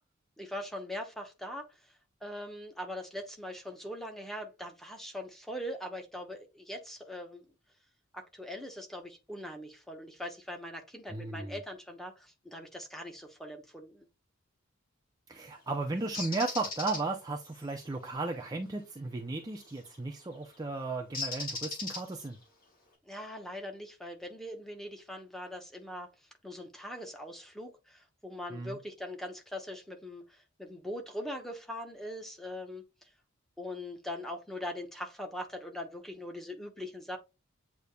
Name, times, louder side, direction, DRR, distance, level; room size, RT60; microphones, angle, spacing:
voice 1, 0.4-7.5 8.1-14.1 23.0-33.1 33.6-37.2, left 1 dB, ahead, 0.8 m, -41 dB
voice 2, 11.1-11.5 15.3-22.4 28.5-28.8, right 3 dB, 20° right, 0.5 m, -35 dB
Bird, 16.1-17.0 19.6-19.9 21.1-22.3, left 3 dB, 45° left, 1.9 m, -37 dB
8.1 x 2.8 x 2.2 m
head